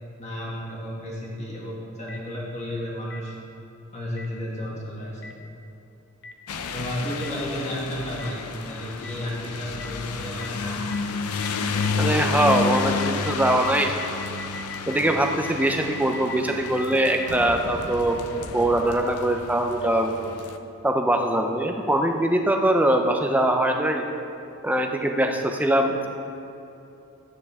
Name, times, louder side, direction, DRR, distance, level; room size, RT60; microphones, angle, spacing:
voice 1, 0.2-3.3 3.9-5.3 6.7-10.8 21.8-21.9, left 1 dB, 30° left, -5 dB, 2.1 m, -32 dB
Boom, 2.1-2.2 3.1-3.2 4.2-4.3 5.2-5.3 6.2-6.3 7.2-7.3 8.2-8.3 9.0-9.1 9.8-9.9 10.4-10.5 10.9-11.0 11.4-11.5 11.8-11.9 12.2-19.7, left 2 dB, 50° left, 0.8 m, -39 dB
sound 1, 6.5-20.6, left 4 dB, 90° left, 0.6 m, -31 dB
voice 2, 12.0-13.9 14.9-18.2 18.5-20.1 20.8-24.0 24.6-26.1, right 1 dB, 5° right, 3 dB, 0.6 m, -22 dB
13.5 x 9.4 x 3.6 m, 2.8 s
head